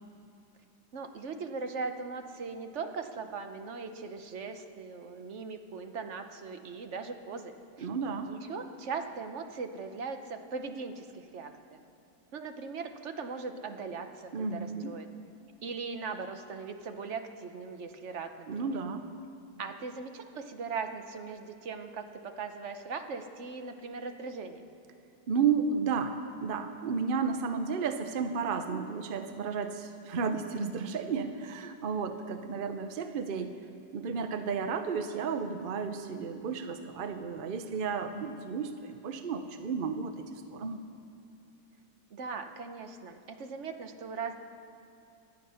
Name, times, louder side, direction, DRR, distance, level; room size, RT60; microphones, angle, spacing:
voice 1, 0.9-7.9 8.2-11.8 12.3-15.1 15.6-18.8 19.6-24.7 42.1-44.4, right 4 dB, 50° right, 7 dB, 1.0 m, -39 dB
voice 2, 7.8-8.3 14.3-14.9 18.5-19.0 25.3-33.5 33.9-40.8, right 5 dB, 65° right, 8 dB, 0.5 m, -33 dB
24.0 x 9.4 x 5.6 m, 2.7 s
omnidirectional pair, 1.9 m